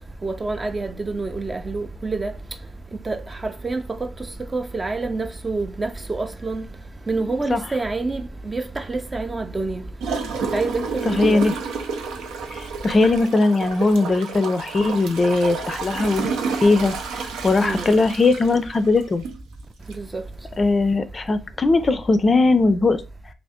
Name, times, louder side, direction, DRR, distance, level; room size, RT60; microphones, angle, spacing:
voice 1, 0.2-2.3 3.1-4.1 4.5-6.7 7.1-9.8 10.4-11.4 17.6-17.9 20.0-20.2, right 3 dB, 25° right, 0.4 m, -27 dB
Gurgling / Toilet flush, 10.0-19.4 19.9-20.0, right 5 dB, 85° right, 0.6 m, -30 dB
voice 2, 11.1-11.5 12.5-16.3 16.6-16.9 17.2-19.2 20.6-23.0, left 3 dB, 35° left, 0.4 m, -19 dB
2.7 x 2.4 x 3.5 m
cardioid pair, 80°, 0 cm